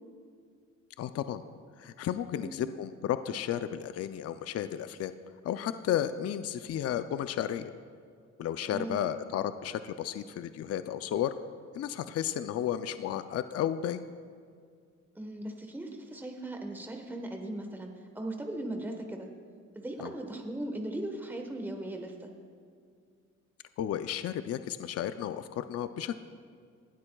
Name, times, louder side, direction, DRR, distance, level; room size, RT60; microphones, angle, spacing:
voice 1, 1.0-1.4 1.8-5.1 5.4-7.7 8.4-11.3 11.7-14.1 20.0-20.1 23.8-26.2, left 10 dB, 55° left, 11 dB, 0.5 m, -33 dB
voice 2, 8.7-9.1 15.1-19.3 19.7-22.3, right 1 dB, 5° right, 3 dB, 1.2 m, -38 dB
18.5 x 12.0 x 2.3 m, 2.1 s
cardioid pair, 90°, 30 cm